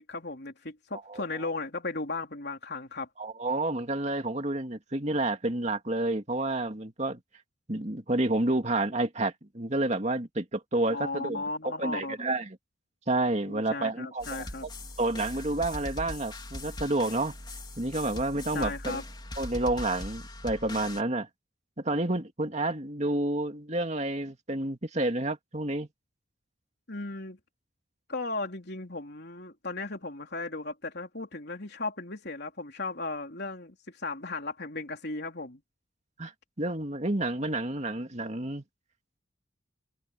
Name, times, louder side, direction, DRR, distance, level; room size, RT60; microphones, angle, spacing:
voice 1, 0.0-3.1 10.9-12.2 13.5-14.7 18.5-19.0 26.9-27.4 28.1-35.6, left 3 dB, 55° left, 3.9 m, -36 dB
voice 2, 3.2-7.2 7.7-11.4 11.8-12.6 13.1-14.5 15.0-17.4 17.8-19.0 19.4-21.3 21.8-25.9 36.2-36.3 36.6-38.6, right 2 dB, 35° right, 2.4 m, -29 dB
sound 1, 14.2-21.0, left 1 dB, 25° left, 4.1 m, -40 dB
head